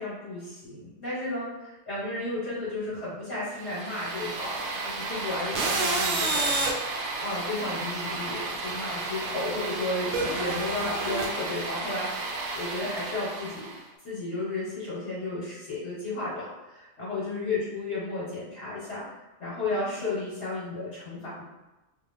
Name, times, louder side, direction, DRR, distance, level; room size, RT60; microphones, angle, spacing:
voice 1, 0.0-6.5 7.2-13.7 14.0-19.0 19.4-21.5, left 2 dB, 60° left, -9 dB, 1.4 m, -33 dB
sound 1, 3.6-13.8, right 3 dB, 70° right, 0.8 m, -31 dB
2.5 x 2.4 x 3.4 m, 1.1 s
omnidirectional pair, 1.3 m